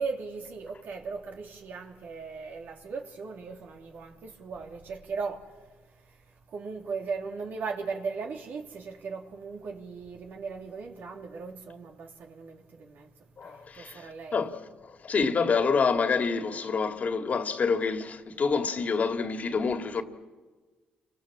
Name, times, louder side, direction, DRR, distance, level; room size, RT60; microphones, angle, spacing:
voice 1, 0.0-5.5 6.5-13.1 13.4-14.4, right 4 dB, 65° right, 3.4 m, -37 dB
voice 2, 13.4-14.5 14.8-20.0, left 5 dB, 45° left, 2.4 m, -27 dB
29.5 x 25.0 x 7.5 m
cardioid pair, 75°, 3 cm